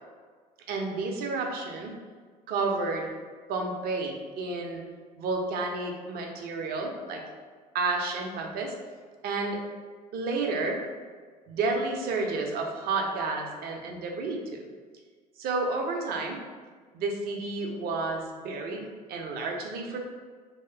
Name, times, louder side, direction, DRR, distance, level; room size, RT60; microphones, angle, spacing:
voice 1, 0.7-1.9 2.5-3.1 3.5-4.8 5.2-7.2 7.7-8.7 9.2-9.6 10.1-10.8 11.5-14.6 15.4-16.4 16.9-18.8 19.1-20.0, right 3 dB, 50° right, 2 dB, 0.7 m, -31 dB
3.0 x 2.8 x 3.4 m, 1.5 s
figure-of-eight pair, 60°, 20 cm